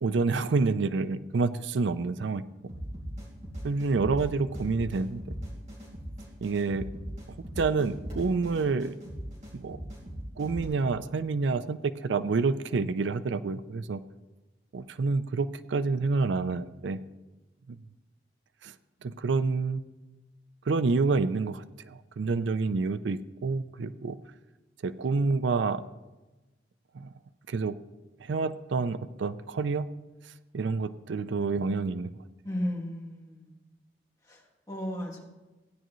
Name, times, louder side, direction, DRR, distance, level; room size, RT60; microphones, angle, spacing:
voice 1, 0.0-2.4 3.6-5.2 6.4-6.9 7.3-8.9 9.5-9.9 10.4-14.0 14.7-17.0 17.7-17.8 18.6-18.7 19.0-19.8 20.7-24.2 24.8-25.8 26.9-27.1 27.5-27.8 28.2-29.9 30.5-32.2, right 4 dB, 85° right, 14 dB, 0.4 m, -28 dB
sound 1, 2.7-10.6, equal, 40° right, 3.7 m, -39 dB
voice 2, 32.4-33.5 34.3-34.4 34.7-35.2, left 1 dB, 20° left, -2 dB, 1.8 m, -34 dB
16.0 x 10.0 x 3.1 m, 1.1 s
head